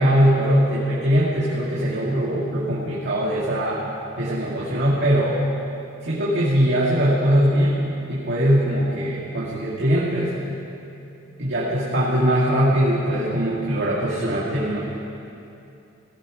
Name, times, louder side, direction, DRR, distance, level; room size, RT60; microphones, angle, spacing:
voice 1, 0.0-3.8 4.2-5.4 6.0-7.8 8.1-10.4 11.4-14.8, equal, 60° right, -6 dB, 2.2 m, -21 dB
17.5 x 15.5 x 5.1 m, 2.7 s
head